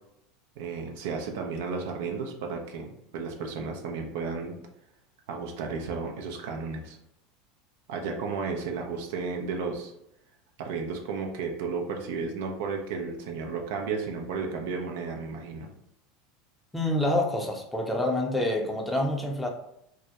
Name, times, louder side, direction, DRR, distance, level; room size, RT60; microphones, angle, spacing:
voice 1, 0.6-4.5 5.3-7.0 7.9-9.9 10.6-15.7, right 4 dB, 70° right, 2 dB, 0.4 m, -33 dB
voice 2, 16.7-19.5, left 1 dB, 5° left, 1 dB, 0.5 m, -27 dB
2.2 x 2.1 x 2.7 m, 0.79 s
hypercardioid pair, 85°, 0 cm